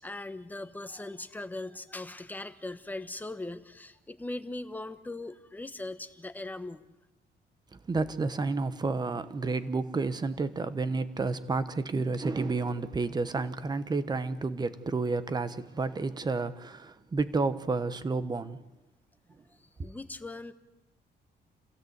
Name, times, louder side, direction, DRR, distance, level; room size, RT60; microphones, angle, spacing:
voice 1, 0.0-6.8 19.8-20.5, left 2 dB, 10° left, 1.1 m, -39 dB
voice 2, 7.9-18.6, right 3 dB, 20° right, 1.1 m, -30 dB
27.0 x 16.5 x 8.1 m
cardioid pair, 160°, 19 cm